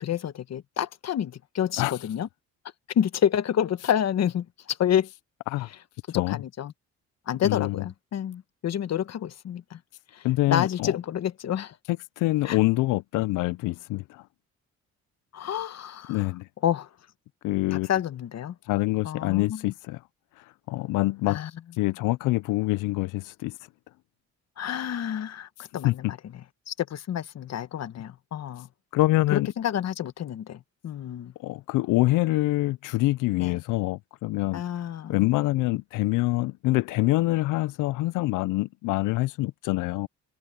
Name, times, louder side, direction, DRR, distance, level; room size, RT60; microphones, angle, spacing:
voice 1, 0.0-2.3 2.9-5.1 6.1-6.7 7.3-9.8 10.1-11.8 12.4-12.6 15.3-16.2 16.6-16.9 17.7-18.5 19.0-19.7 21.3-21.5 24.6-26.2 26.7-28.7 29.3-31.3 33.4-33.6 34.5-35.2, left 9 dB, 60° left, 1.2 m, -29 dB
voice 2, 7.4-7.9 10.2-11.0 11.9-14.3 16.1-16.5 17.4-17.9 18.7-20.0 20.4-21.4 21.7-23.6 25.8-26.1 28.9-29.5 31.4-34.6 35.1-40.1, left 19 dB, 90° left, 0.5 m, -25 dB
cardioid pair, 90°, 30 cm